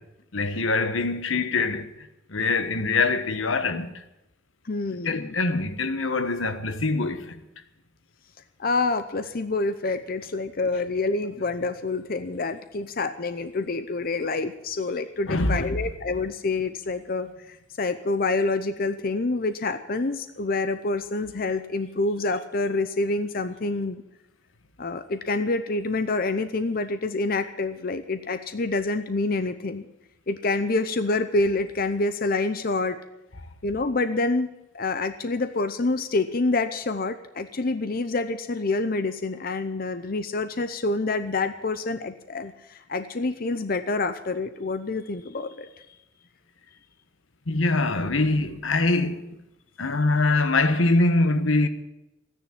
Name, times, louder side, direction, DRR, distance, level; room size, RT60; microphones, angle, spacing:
voice 1, 0.3-1.9 2.3-3.9 5.0-7.3 15.3-15.7 47.5-49.2 49.8-51.7, left 3 dB, 90° left, 1.2 m, -23 dB
voice 2, 4.7-5.3 8.6-24.0 24.8-29.8 30.3-33.0 33.6-34.5 34.7-45.7 47.9-48.0, left 3 dB, 50° left, 0.7 m, -27 dB
14.0 x 10.0 x 8.7 m
head